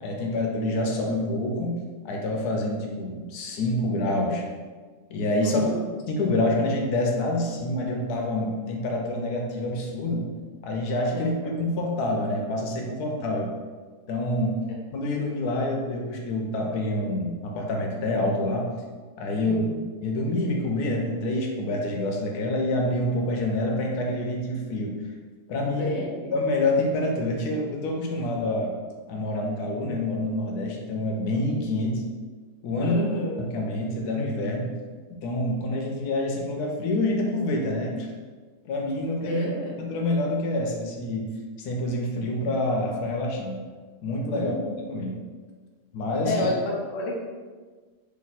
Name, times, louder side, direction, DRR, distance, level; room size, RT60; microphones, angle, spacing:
voice 1, 0.0-4.4 5.1-5.6 6.1-10.3 10.6-13.5 14.1-14.6 14.9-18.7 19.2-19.6 20.0-25.0 25.5-26.0 26.3-28.8 29.1-32.0 32.6-33.0 33.4-34.7 35.1-38.1 38.6-39.4 39.8-41.3 41.6-43.6 44.0-44.5 44.9-45.2 45.9-46.5, left 1 dB, 90° left, 0 dB, 1.2 m, -27 dB
voice 2, 5.4-5.9 11.1-11.6 19.4-19.7 25.8-26.3 32.8-33.4 39.2-39.7 44.3-44.8 46.2-47.2, left 1 dB, 50° left, -2 dB, 0.9 m, -29 dB
3.2 x 2.7 x 4.1 m, 1.4 s
omnidirectional pair, 1.7 m